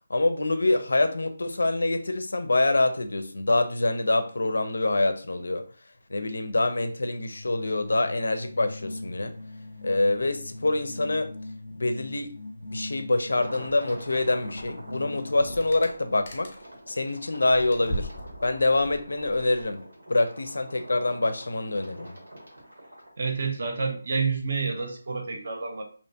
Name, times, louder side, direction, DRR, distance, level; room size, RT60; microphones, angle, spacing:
voice 1, 0.1-5.7 6.1-9.3 9.8-11.3 11.8-12.3 12.7-16.5 16.9-18.1 18.4-19.8 20.1-22.2, left 2 dB, 85° left, 0.4 m, -25 dB
sound 1, 7.3-15.9, left 2 dB, 70° right, 0.9 m, -41 dB
sound 2, 13.3-23.1, right 1 dB, 90° right, 1.2 m, -45 dB
sound 3, 14.5-14.8 15.1-16.8 17.1-19.8, equal, 25° left, 0.4 m, -39 dB
voice 2, 23.2-25.8, right 4 dB, 40° right, 0.5 m, -29 dB
2.7 x 2.2 x 2.6 m
hypercardioid pair, 180°, 0 cm